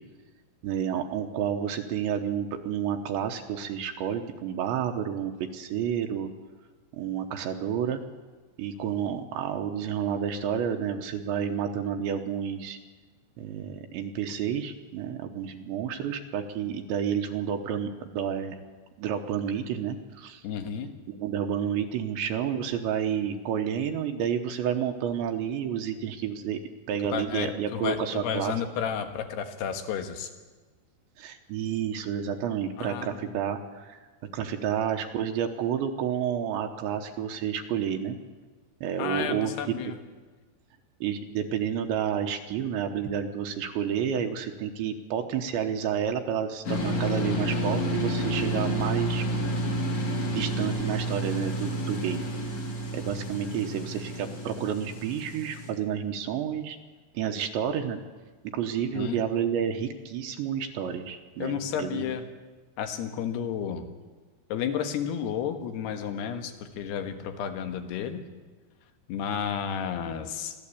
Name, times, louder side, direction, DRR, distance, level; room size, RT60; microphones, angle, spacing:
voice 1, 0.6-6.3 6.9-8.0 8.6-12.8 13.4-18.6 19.0-20.4 21.1-26.6 26.9-28.5 31.2-34.0 34.3-38.2 38.8-39.8 41.0-49.3 50.3-52.3 52.9-56.8 57.1-58.0 58.4-62.1, right 8 dB, 80° right, 5 dB, 3.3 m, -30 dB
voice 2, 20.4-20.9 27.1-30.3 32.8-33.4 39.0-39.9 58.9-59.2 61.4-62.3 62.8-63.9 64.5-68.2 69.1-70.5, left 8 dB, 70° left, 8 dB, 3.3 m, -32 dB
sound 1, 46.6-55.7, equal, 40° left, 4.1 m, -30 dB
23.0 x 15.5 x 8.5 m, 1.3 s
omnidirectional pair, 5.3 m